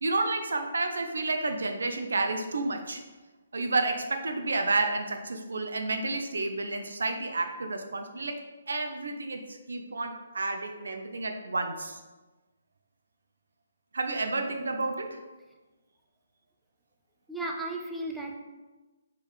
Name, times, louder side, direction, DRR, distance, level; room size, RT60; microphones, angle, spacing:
voice 1, 0.0-3.0 3.5-12.0 13.9-15.2, right 3 dB, 75° right, 5 dB, 0.5 m, -30 dB
voice 2, 17.3-18.4, right 2 dB, ahead, -1 dB, 0.4 m, -34 dB
4.4 x 3.1 x 3.5 m, 1.2 s
figure-of-eight pair, 140°, 0 cm